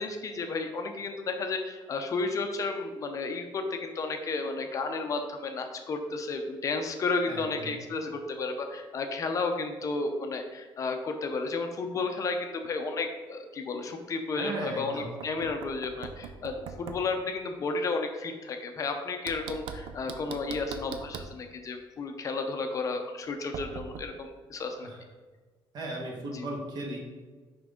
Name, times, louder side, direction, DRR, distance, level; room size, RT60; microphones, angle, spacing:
voice 1, 0.0-24.9 26.3-26.5, left 3 dB, 35° left, 5 dB, 0.5 m, -32 dB
voice 2, 7.2-7.7 14.3-15.2 24.8-25.0 25.7-27.0, right 1 dB, 45° right, 0 dB, 1.4 m, -36 dB
Knock, 15.0-17.1 19.3-21.4 23.5-24.1, right 6 dB, 65° right, 0.6 m, -41 dB
6.1 x 5.2 x 3.6 m, 1.4 s
cardioid pair, 165°, 9 cm